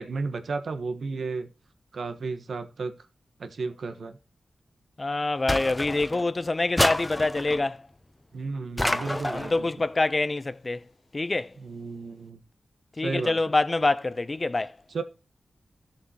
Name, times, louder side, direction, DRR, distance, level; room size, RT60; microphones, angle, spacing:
voice 1, 0.0-1.5 1.9-3.0 3.4-4.2 8.3-9.7 11.6-12.4 13.0-13.4 14.9-15.0, right 4 dB, 75° right, 1.3 m, -33 dB
voice 2, 5.0-7.8 9.3-10.8 11.1-11.5 13.0-14.8, left 2 dB, 35° left, 0.6 m, -26 dB
sound 1, 5.5-6.3 6.8-7.6 8.8-9.6, left 1 dB, 15° left, 0.9 m, -28 dB
14.0 x 7.2 x 3.0 m
cardioid pair, 60°, 0 cm